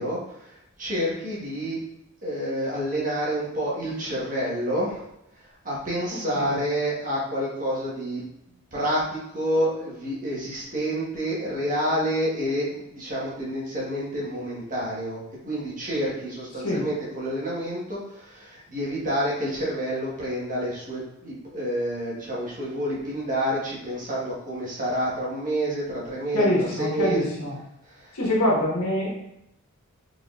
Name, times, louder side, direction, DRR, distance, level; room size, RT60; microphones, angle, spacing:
voice 1, 0.0-1.8 2.2-5.1 5.4-8.2 8.7-27.3 27.8-28.2, equal, 35° right, -6 dB, 1.4 m, -29 dB
voice 2, 26.3-27.5 28.1-29.1, left 1 dB, 70° left, -4 dB, 1.4 m, -24 dB
4.4 x 3.7 x 2.4 m, 0.80 s
head